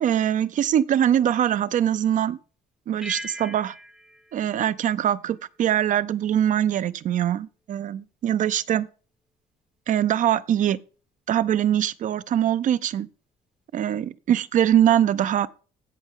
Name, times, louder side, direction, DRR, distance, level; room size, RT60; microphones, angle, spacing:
voice 1, 0.0-2.4 2.9-3.7 4.3-8.9 9.9-10.8 11.3-13.1 13.7-15.5, right 10 dB, 50° right, 0.5 m, -22 dB
sound 1, 3.0-5.8, equal, 5° right, 0.7 m, -41 dB
15.5 x 5.4 x 3.7 m
cardioid pair, 110°, 17 cm